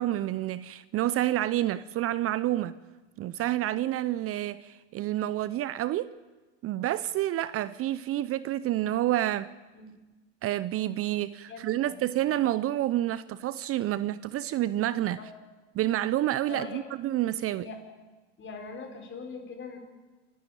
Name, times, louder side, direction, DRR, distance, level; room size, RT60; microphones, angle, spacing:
voice 1, 0.0-2.7 3.2-6.1 6.6-9.5 10.4-15.2 15.7-17.7, right 14 dB, 40° right, 0.7 m, -29 dB
voice 2, 11.5-12.0 15.2-15.3 16.5-16.8 17.5-17.8 18.4-19.8, left 4 dB, 35° left, 4.5 m, -41 dB
28.0 x 11.5 x 9.1 m
hypercardioid pair, 85°, 35 cm